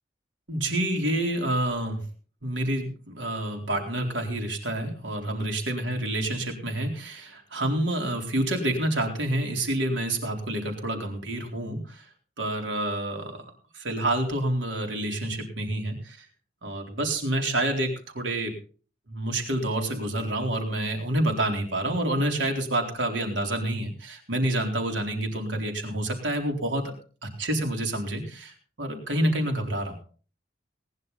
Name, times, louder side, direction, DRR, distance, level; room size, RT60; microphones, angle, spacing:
voice 1, 0.5-2.0 2.4-12.1 12.4-13.4 13.7-16.3 16.6-18.5 19.1-26.9 27.2-30.0, right 1 dB, 90° right, 2 dB, 4.0 m, -28 dB
19.0 x 11.0 x 4.1 m, 0.41 s
head